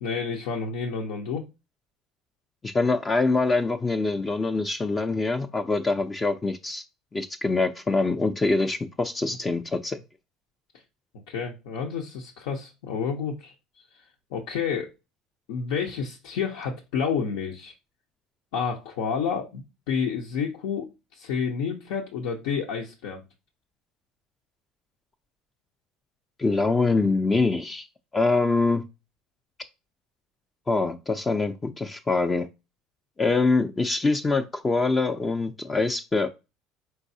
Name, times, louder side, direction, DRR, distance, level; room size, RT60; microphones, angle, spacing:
voice 1, 0.0-1.4 9.3-9.4 11.3-13.5 14.3-14.9 15.5-17.7 18.5-19.6 19.9-23.2, left 6 dB, 85° left, 0.7 m, -29 dB
voice 2, 2.6-6.8 7.1-10.0 26.4-27.9 28.1-28.8 30.7-32.5 33.2-36.3, left 3 dB, 20° left, 0.4 m, -24 dB
4.6 x 3.9 x 2.7 m
supercardioid pair, 100°, 0 cm